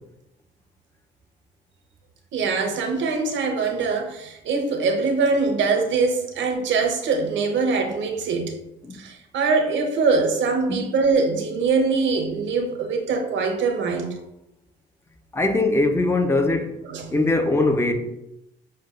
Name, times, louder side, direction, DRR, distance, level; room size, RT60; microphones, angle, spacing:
voice 1, 2.3-8.5 8.9-14.1 16.9-17.2, right 4 dB, 70° right, 0.7 m, -23 dB
voice 2, 15.3-16.8 17.1-17.9, left 2 dB, 15° left, 0.5 m, -21 dB
6.3 x 2.2 x 2.4 m
cardioid pair, 90°, 20 cm